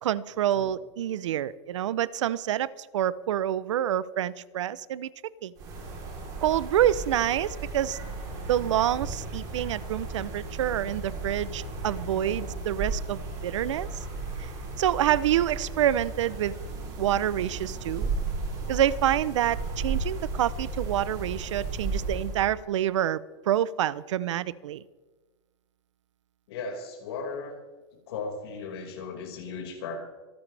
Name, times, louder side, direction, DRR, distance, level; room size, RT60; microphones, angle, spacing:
voice 1, 0.0-5.1 5.4-5.5 6.4-8.0 8.5-14.0 14.4-14.5 14.8-16.5 17.0-18.1 18.7-23.2 23.5-24.8, right 11 dB, 80° right, 18 dB, 0.7 m, -27 dB
sound 1, 5.6-22.5, right 3 dB, 25° right, 3.7 m, -35 dB
voice 2, 26.5-27.6 28.1-30.1, left 4 dB, 55° left, 0 dB, 5.3 m, -36 dB
26.0 x 12.5 x 3.4 m, 1.3 s
supercardioid pair, 175°, 15 cm